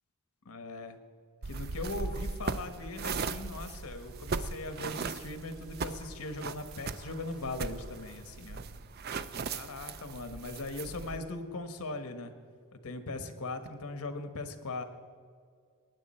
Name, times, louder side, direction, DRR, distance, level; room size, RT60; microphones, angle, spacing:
voice 1, 0.4-1.0 1.4-8.6 9.3-12.3 12.7-14.8, left 2 dB, 85° left, 9 dB, 1.2 m, -40 dB
sound 1, 1.4-11.2, right 4 dB, 45° right, 0.4 m, -38 dB
sound 2, 3.1-8.2, right 4 dB, 60° right, 2.9 m, -62 dB
20.0 x 9.7 x 4.3 m, 2.1 s
head